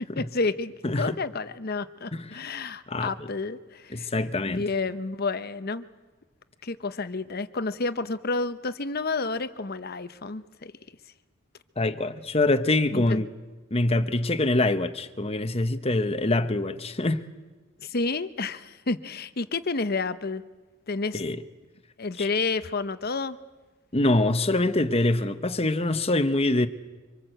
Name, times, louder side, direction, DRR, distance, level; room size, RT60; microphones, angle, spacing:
voice 1, 0.2-4.1 4.5-5.9 6.6-10.7 12.9-13.2 17.8-20.4 20.9-21.2 22.0-23.4, left 3 dB, 50° left, 0.9 m, -30 dB
voice 2, 0.8-1.2 2.1-2.2 2.9-3.3 3.9-4.6 11.8-13.3 13.7-17.2 21.1-21.4 22.2-22.3 23.9-26.7, left 2 dB, 30° left, 1.2 m, -24 dB
25.5 x 25.5 x 8.0 m
head